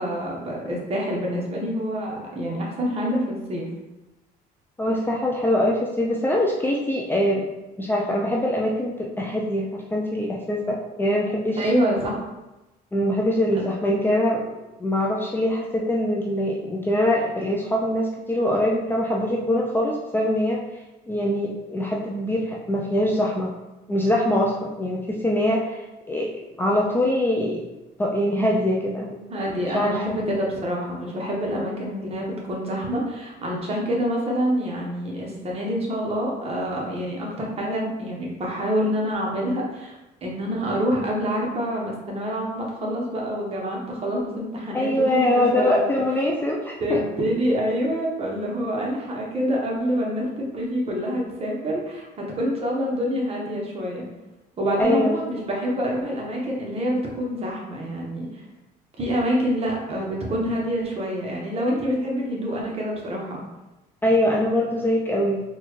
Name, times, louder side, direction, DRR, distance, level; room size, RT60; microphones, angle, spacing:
voice 1, 0.0-3.7 11.5-12.2 13.6-13.7 29.3-39.9 40.2-45.8 46.8-54.0 54.6-58.4 59.0-63.4, equal, 35° right, -2 dB, 1.0 m, -26 dB
voice 2, 4.8-7.5 7.8-11.7 12.9-20.6 21.1-23.5 23.9-26.3 26.6-27.6 28.0-29.2 29.7-30.1 31.6-31.7 44.7-47.0 54.8-55.1 64.0-65.4, left 1 dB, 10° left, -2 dB, 0.4 m, -23 dB
4.0 x 2.3 x 3.1 m, 1.0 s
cardioid pair, 110°, 17 cm